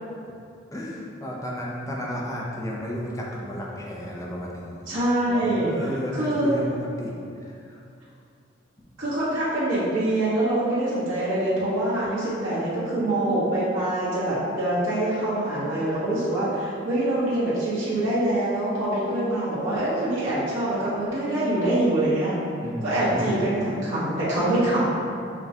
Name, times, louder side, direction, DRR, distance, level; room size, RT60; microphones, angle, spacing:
voice 1, 0.7-4.7 5.3-7.1 7.4-7.8 22.6-23.4, equal, 15° left, -3 dB, 0.5 m, -33 dB
voice 2, 4.8-5.7 6.1-6.5 9.0-22.3 22.8-24.9, right 1 dB, 80° right, -10 dB, 1.3 m, -24 dB
5.7 x 2.2 x 2.8 m, 2.5 s
head